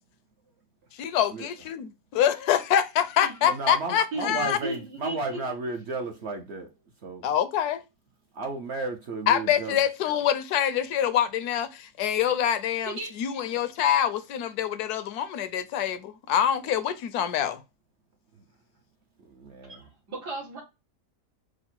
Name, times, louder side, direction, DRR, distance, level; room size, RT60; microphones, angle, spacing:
voice 1, 0.9-4.6 7.2-7.8 9.3-12.9 13.2-17.6, left 9 dB, 75° left, 1.1 m, -25 dB
voice 2, 3.4-6.7 7.0-7.3 8.3-9.8 19.2-19.7, right 3 dB, 55° right, 0.8 m, -33 dB
voice 3, 4.1-5.4 12.8-13.1 20.1-20.6, right 2 dB, 75° right, 2.4 m, -35 dB
4.8 x 2.1 x 4.3 m
omnidirectional pair, 1.7 m